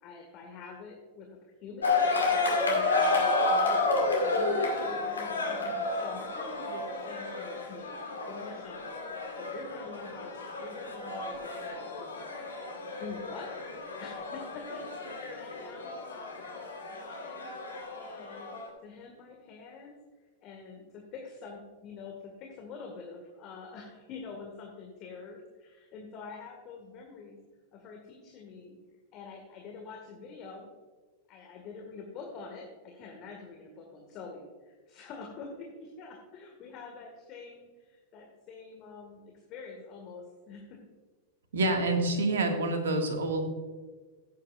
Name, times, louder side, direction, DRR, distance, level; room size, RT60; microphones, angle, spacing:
voice 1, 0.0-1.9 2.7-4.1 4.3-8.9 9.4-12.3 13.0-13.5 14.0-17.5 17.9-18.5 18.8-20.0 20.4-27.4 27.7-28.8 29.1-30.7 31.3-40.8, left 4 dB, 40° left, 1 dB, 1.7 m, -46 dB
sound 1, 1.8-18.7, left 3 dB, 80° left, 2.0 m, -31 dB
voice 2, 41.5-43.5, right 2 dB, 65° right, 4 dB, 1.8 m, -27 dB
15.5 x 8.5 x 2.4 m, 1.4 s
figure-of-eight pair, 90°, 0 cm